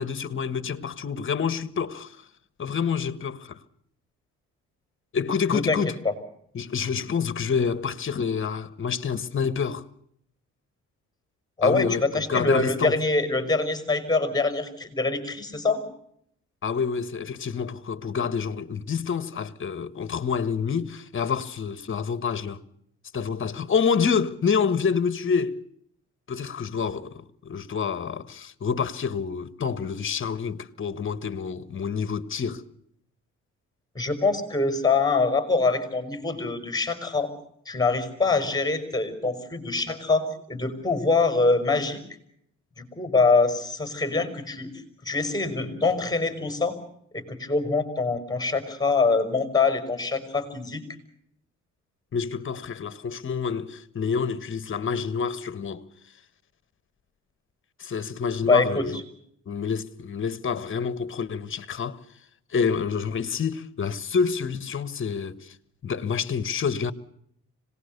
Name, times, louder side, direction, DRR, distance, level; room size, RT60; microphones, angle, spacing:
voice 1, 0.0-2.2 2.6-3.6 5.1-5.9 6.5-9.8 11.6-13.0 16.6-22.6 23.1-25.6 26.3-32.6 52.1-55.8 57.8-59.0 59.5-62.0 62.5-65.5 65.8-66.9, left 6 dB, 40° left, 1.5 m, -27 dB
voice 2, 11.6-15.8 33.9-37.3 37.7-42.0 42.8-44.7 45.0-46.8 47.1-50.8 58.5-59.0, left 3 dB, 10° left, 5.6 m, -24 dB
26.0 x 19.0 x 6.8 m
cardioid pair, 90°, 30 cm